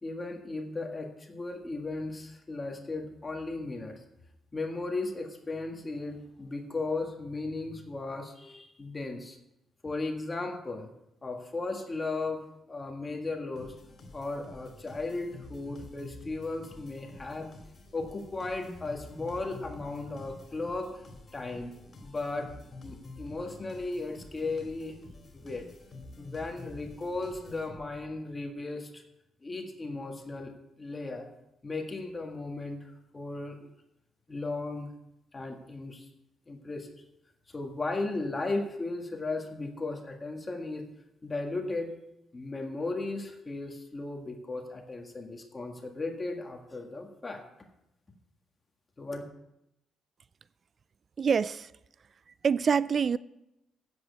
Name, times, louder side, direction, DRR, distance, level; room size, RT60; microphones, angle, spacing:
voice 1, 0.0-4.0 4.5-9.4 9.8-10.9 11.2-13.7 14.1-17.5 17.9-21.0 21.3-21.7 22.0-22.5 22.8-25.0 25.3-25.7 26.2-29.0 29.4-30.5 30.8-31.3 31.6-33.7 34.3-34.9 35.3-36.0 36.5-36.9 37.5-40.9 41.2-41.9 42.3-47.4 49.0-49.2, left 3 dB, 25° left, 1.7 m, -36 dB
sound 1, 13.6-28.1, left 2 dB, 40° left, 2.8 m, -49 dB
voice 2, 51.2-51.7 52.4-53.2, right 6 dB, 45° right, 0.3 m, -25 dB
8.6 x 7.9 x 8.1 m
cardioid pair, 90°, 0 cm